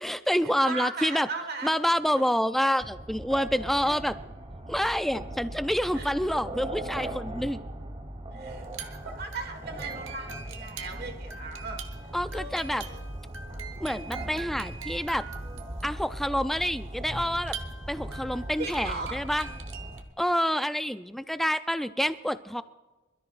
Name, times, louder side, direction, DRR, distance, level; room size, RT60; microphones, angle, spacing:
voice 1, 0.0-1.3 1.6-4.2 4.7-7.6 12.1-12.8 13.8-15.3 15.8-17.6 17.9-19.5 20.2-22.6, equal, ahead, 12 dB, 0.3 m, -27 dB
voice 2, 0.6-1.7 3.8-3.9 5.9-6.1 8.3-13.0 18.3-19.2, right 3 dB, 50° right, 5 dB, 1.7 m, -38 dB
sound 1, 2.8-20.0, right 1 dB, 25° right, 1.0 m, -39 dB
sound 2, 8.6-20.1, right 6 dB, 75° right, 1.1 m, -44 dB
26.0 x 13.5 x 2.5 m, 1.2 s
head